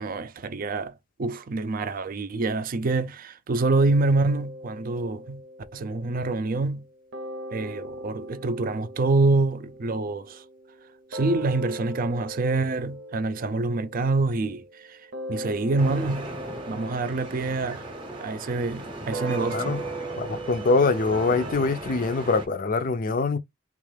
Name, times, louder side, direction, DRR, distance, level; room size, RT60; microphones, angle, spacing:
voice 1, 0.0-5.4 5.7-6.9 7.5-10.4 11.1-15.0 15.3-16.3 16.7-17.9 18.2-19.8, right 3 dB, 45° right, 0.4 m, -26 dB
sound 1, 3.6-6.9 7.1-21.5, right 1 dB, 80° right, 0.7 m, -39 dB
sound 2, 15.8-22.5, right 1 dB, 25° right, 0.8 m, -37 dB
voice 2, 20.2-23.4, left 4 dB, 45° left, 0.4 m, -24 dB
3.5 x 2.4 x 3.2 m
head